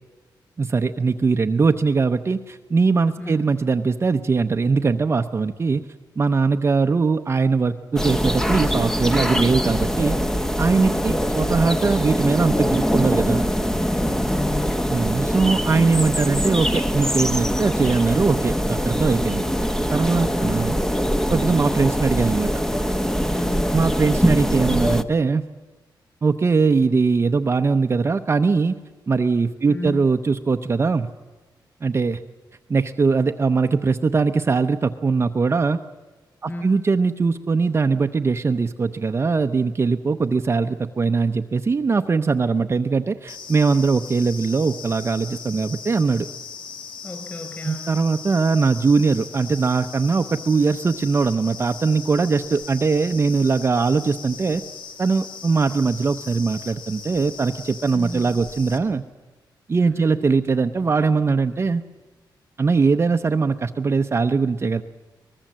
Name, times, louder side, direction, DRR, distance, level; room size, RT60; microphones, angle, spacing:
voice 1, 0.6-5.8 6.2-10.2 10.6-13.4 14.9-19.5 19.9-20.8 21.3-22.5 23.7-25.5 26.2-28.7 29.1-31.1 31.8-32.2 32.7-35.8 36.4-46.3 47.6-54.6 55.0-59.0 59.7-61.8 62.6-64.8, right 4 dB, 30° right, 7 dB, 0.7 m, -21 dB
voice 2, 3.2-3.5 10.8-11.2 13.9-14.9 20.3-20.7 23.3-23.8 29.7-30.0 36.4-36.8 47.0-47.9 57.9-58.4 59.8-60.2, left 1 dB, 25° left, 6 dB, 6.0 m, -33 dB
sound 1, 8.0-25.0, equal, 5° left, 0.9 m, -23 dB
sound 2, 43.3-58.8, left 6 dB, 85° left, 2.1 m, -38 dB
23.5 x 20.0 x 7.5 m, 1.3 s
wide cardioid pair, 125°, 8 cm